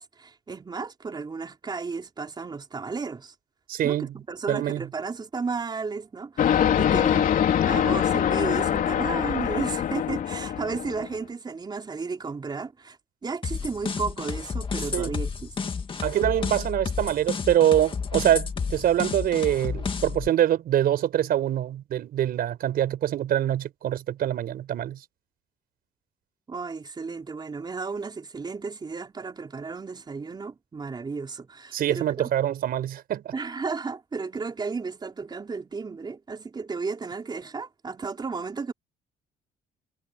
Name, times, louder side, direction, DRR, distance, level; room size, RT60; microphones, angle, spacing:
voice 1, 0.0-3.3 3.8-7.3 7.7-15.5 26.5-32.3 33.3-38.7, right 4 dB, 25° right, 3.9 m, -33 dB
voice 2, 3.7-4.1 4.5-4.8 14.9-15.2 16.0-25.0 31.7-33.3, right 11 dB, 60° right, 5.0 m, -24 dB
sound 1, 6.4-11.1, left 9 dB, 55° left, 3.7 m, -23 dB
sound 2, 13.4-20.3, left 5 dB, 30° left, 2.3 m, -31 dB
cardioid pair, 110°, 17 cm